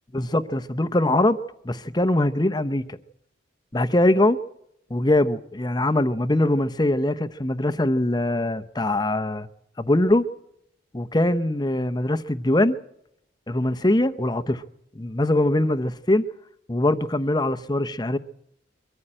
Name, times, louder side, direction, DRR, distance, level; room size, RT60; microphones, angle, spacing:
voice 1, 0.1-1.4 1.6-3.0 3.7-4.4 4.9-9.5 9.8-10.3 10.9-12.8 13.5-14.6 14.9-16.3 16.7-18.2, left 1 dB, 20° left, 0.8 m, -22 dB
23.5 x 14.0 x 8.9 m
head